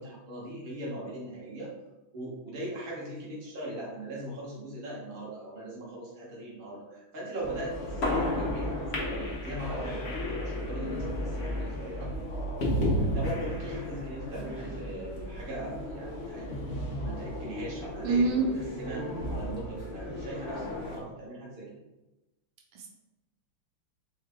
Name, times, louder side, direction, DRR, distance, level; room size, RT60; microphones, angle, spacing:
voice 1, 0.0-1.7 2.1-10.0 10.4-12.1 13.1-16.5 16.9-18.5 18.8-21.8, right 1 dB, 30° right, -6 dB, 1.1 m, -40 dB
sound 1, 7.4-21.0, left 1 dB, 65° left, 0.6 m, -33 dB
voice 2, 18.0-18.5 22.7-22.9, right 4 dB, 80° right, 1 dB, 1.6 m, -25 dB
3.9 x 3.1 x 3.6 m, 1.0 s
omnidirectional pair, 2.4 m